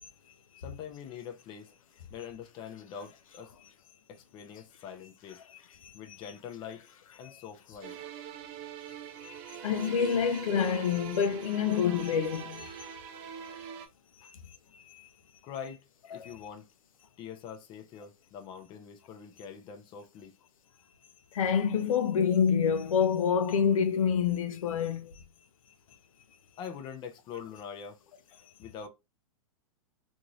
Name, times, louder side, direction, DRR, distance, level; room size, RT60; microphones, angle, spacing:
voice 1, 0.6-1.7 2.1-3.5 4.1-5.4 5.9-6.8 7.2-8.0 12.6-13.1 14.2-14.3 15.4-15.8 16.1-16.6 17.2-20.3 26.6-28.0 28.6-28.9, left 7 dB, 30° left, 0.6 m, -44 dB
sound 1, 7.8-13.9, right 8 dB, 35° right, 0.5 m, -43 dB
voice 2, 9.6-12.7 16.1-16.3 21.3-25.1, left 7 dB, 85° left, 0.6 m, -27 dB
2.6 x 2.6 x 3.0 m
hypercardioid pair, 140°, 17 cm